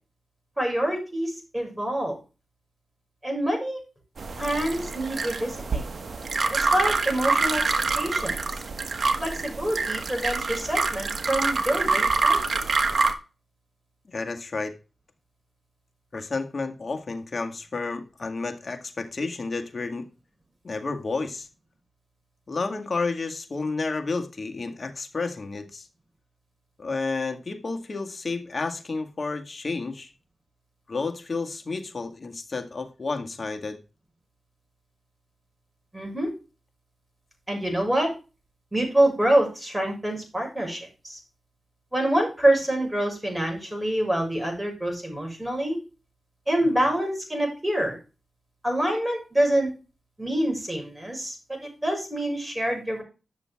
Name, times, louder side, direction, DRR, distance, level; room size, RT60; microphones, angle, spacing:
voice 1, 0.6-2.2 3.2-3.8 4.4-5.8 6.5-7.6 7.9-8.4 9.2-12.7 35.9-36.3 37.5-38.1 38.7-41.2 41.9-45.8 46.5-48.0 48.6-49.7 50.2-53.0, right 1 dB, 10° right, 1 dB, 6.2 m, -26 dB
sound 1, 4.2-13.1, right 4 dB, 60° right, 1.3 m, -26 dB
voice 2, 14.1-14.7 16.1-20.1 20.6-21.5 22.5-25.9 26.8-30.1 30.9-33.8 46.6-46.8, left 3 dB, 50° left, 5 dB, 1.9 m, -31 dB
11.0 x 6.8 x 3.6 m, 0.32 s
cardioid pair, 50°, 0 cm